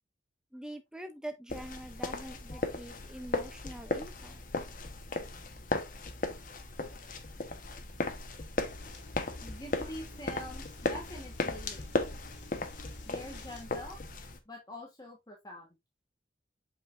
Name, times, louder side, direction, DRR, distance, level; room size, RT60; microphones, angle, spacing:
voice 1, 0.5-4.4, right 1 dB, 5° right, 0.6 m, -44 dB
sound 1, 1.5-14.4, left 2 dB, 45° left, 1.2 m, -36 dB
voice 2, 2.1-2.6 3.8-4.0 9.4-12.2 13.0-14.0 14.5-15.7, left 1 dB, 20° left, 1.4 m, -46 dB
sound 2, 8.6-13.6, left 1 dB, 75° left, 2.3 m, -50 dB
7.6 x 5.5 x 2.6 m
head